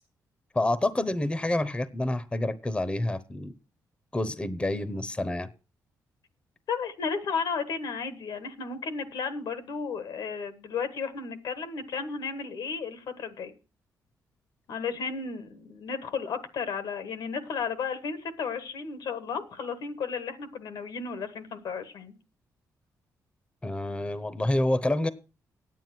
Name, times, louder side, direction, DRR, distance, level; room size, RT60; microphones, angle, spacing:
voice 1, 0.5-3.5 4.1-5.5 23.6-25.1, left 1 dB, 15° left, 0.8 m, -28 dB
voice 2, 6.7-13.5 14.7-22.1, left 5 dB, 80° left, 1.4 m, -33 dB
9.2 x 9.0 x 6.0 m
cardioid pair, 85°, 7 cm